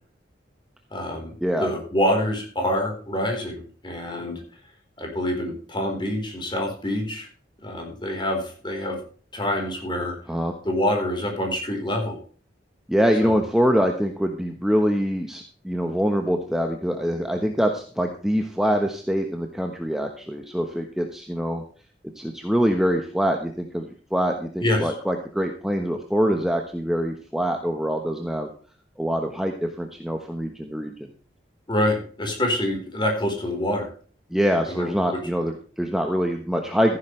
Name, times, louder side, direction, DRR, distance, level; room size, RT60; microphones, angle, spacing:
voice 1, 0.9-1.3 1.6-4.4 5.0-7.3 7.6-9.0 9.3-10.1 10.6-12.2 13.2-13.4 24.6-24.9 31.7-33.9 34.7-34.9, left 1 dB, 25° left, 3 dB, 4.2 m, -26 dB
voice 2, 1.4-1.7 10.3-10.5 12.9-21.6 22.2-28.5 29.0-30.9 34.3-37.0, equal, ahead, 3 dB, 1.1 m, -24 dB
14.5 x 10.5 x 3.3 m, 0.42 s
head